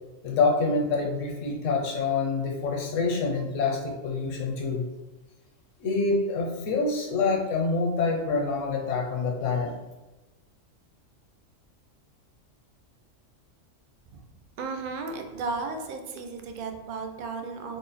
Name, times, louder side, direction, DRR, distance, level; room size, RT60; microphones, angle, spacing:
voice 1, 0.2-4.8 5.8-9.7, left 4 dB, 80° left, 1 dB, 1.1 m, -26 dB
voice 2, 14.6-17.8, right 4 dB, 60° right, 5 dB, 0.5 m, -34 dB
3.6 x 2.1 x 4.0 m, 1.1 s
omnidirectional pair, 1.3 m